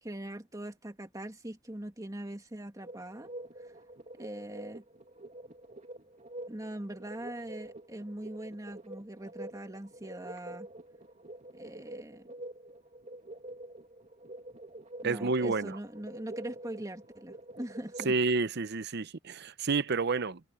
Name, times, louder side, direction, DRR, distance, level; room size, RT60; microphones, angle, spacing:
voice 1, 0.0-3.3 3.6-3.7 4.2-4.8 6.5-10.7 11.5-12.3 15.0-18.1, right 1 dB, 15° right, 2.1 m, -42 dB
sound 1, 2.8-18.2, right 1 dB, 35° right, 2.7 m, -47 dB
voice 2, 15.0-15.8 18.0-20.4, right 4 dB, 55° right, 0.8 m, -29 dB
head